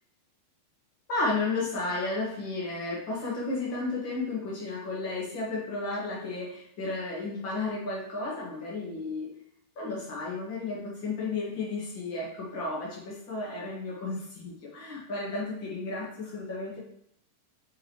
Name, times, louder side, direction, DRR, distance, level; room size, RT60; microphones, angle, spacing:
voice 1, 1.1-9.3 9.7-16.8, left 3 dB, 80° left, -6 dB, 1.0 m, -33 dB
8.8 x 4.6 x 3.1 m, 0.73 s
omnidirectional pair, 5.3 m